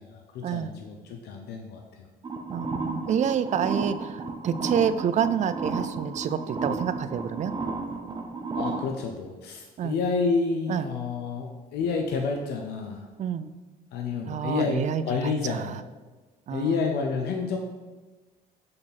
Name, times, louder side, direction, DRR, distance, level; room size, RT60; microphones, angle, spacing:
voice 1, 0.0-2.1 8.6-13.1 13.9-15.8 16.5-17.6, left 4 dB, 75° left, 3 dB, 0.8 m, -29 dB
sound 1, 2.2-8.8, right 3 dB, 25° right, 0.9 m, -32 dB
voice 2, 2.5-7.5 9.8-9.9 10.7-10.9 13.2-13.5 14.3-15.8 16.5-16.8, right 8 dB, 45° right, 13 dB, 0.4 m, -28 dB
8.6 x 4.3 x 4.2 m, 1.3 s
cardioid pair, 110°, 17 cm